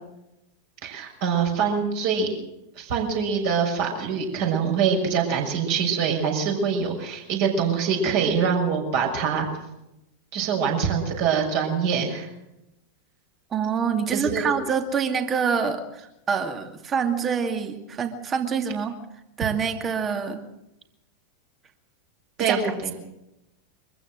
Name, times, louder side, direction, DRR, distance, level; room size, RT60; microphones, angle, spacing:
voice 1, 0.8-2.3 2.8-9.5 10.3-12.3 14.1-14.6 22.4-22.9, right 6 dB, 50° right, 1 dB, 6.4 m, -24 dB
voice 2, 13.5-19.0 19.4-20.4 22.4-22.9, right 6 dB, 25° right, 6 dB, 2.4 m, -26 dB
24.0 x 15.0 x 7.7 m, 0.90 s
figure-of-eight pair, 90°, 0 cm